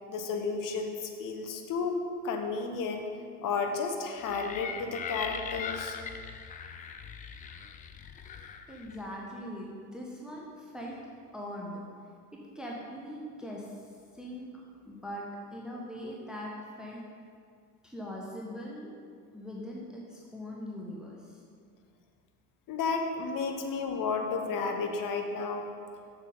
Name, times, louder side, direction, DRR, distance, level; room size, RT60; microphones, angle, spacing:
voice 1, 0.1-2.0 2.2-3.1 3.4-6.0 22.7-25.7, left 4 dB, 45° left, 4 dB, 1.1 m, -32 dB
sound 1, 4.3-9.1, left 6 dB, 20° left, 0.3 m, -40 dB
voice 2, 8.7-10.9 11.3-11.8 12.5-17.0 17.8-18.9 19.3-21.4, equal, ahead, -3 dB, 1.2 m, -41 dB
7.0 x 6.5 x 5.4 m, 2.2 s
figure-of-eight pair, 65°, 48 cm